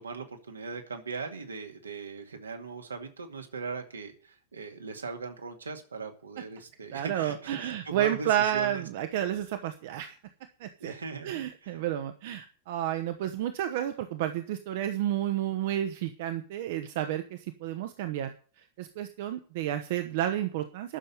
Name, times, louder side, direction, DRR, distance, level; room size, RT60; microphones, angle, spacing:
voice 1, 0.0-8.8 10.8-11.8, right 4 dB, 75° right, 5 dB, 2.1 m, -39 dB
voice 2, 6.9-10.2 10.6-10.9 11.2-18.3 18.8-21.0, right 11 dB, 50° right, 8 dB, 1.1 m, -31 dB
11.5 x 7.0 x 9.2 m, 0.41 s
figure-of-eight pair, 90°, 0 cm